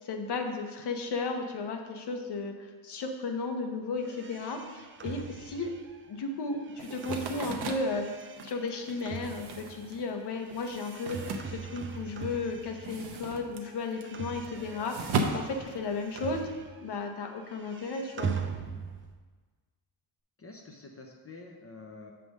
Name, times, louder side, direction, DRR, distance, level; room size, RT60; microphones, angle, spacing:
voice 1, 0.0-2.5 2.8-5.7 6.1-8.1 8.4-16.4 16.8-18.3, left 3 dB, 55° left, 3 dB, 1.0 m, -34 dB
sound 1, 4.0-13.3 13.5-17.0 17.2-19.2, right 6 dB, 30° right, 0.3 m, -41 dB
sound 2, 6.8-12.2 12.5-16.4, right 3 dB, 55° right, 0.8 m, -37 dB
voice 2, 20.4-22.1, left 3 dB, 30° left, 1 dB, 0.6 m, -47 dB
7.5 x 3.5 x 6.4 m, 1.4 s
wide cardioid pair, 155°, 48 cm